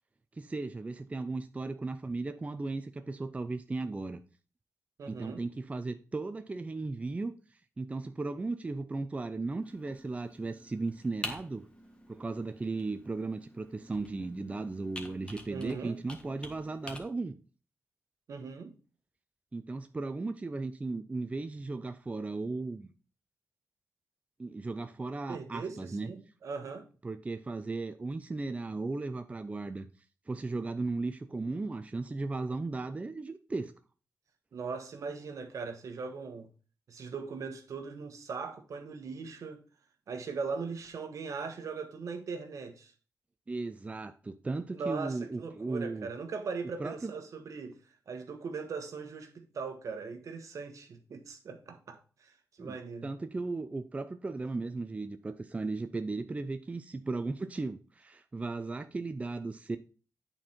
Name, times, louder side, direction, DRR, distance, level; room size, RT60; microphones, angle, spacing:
voice 1, 0.4-4.2 5.1-7.3 7.8-11.7 12.1-17.4 19.5-22.9 24.4-26.1 27.0-29.9 30.3-33.7 43.5-46.1 46.8-47.1 52.6-52.8 53.0-59.8, right 3 dB, 25° right, 0.5 m, -36 dB
voice 2, 5.0-5.4 15.5-16.0 18.3-18.7 25.3-26.9 34.5-36.5 36.9-39.6 40.1-42.9 44.7-47.8 48.1-52.3 52.6-53.1, right 5 dB, 70° right, 1.3 m, -39 dB
Computer keyboard, 9.6-17.0, left 1 dB, 15° left, 1.5 m, -47 dB
8.9 x 4.4 x 4.3 m
cardioid pair, 95°, 6 cm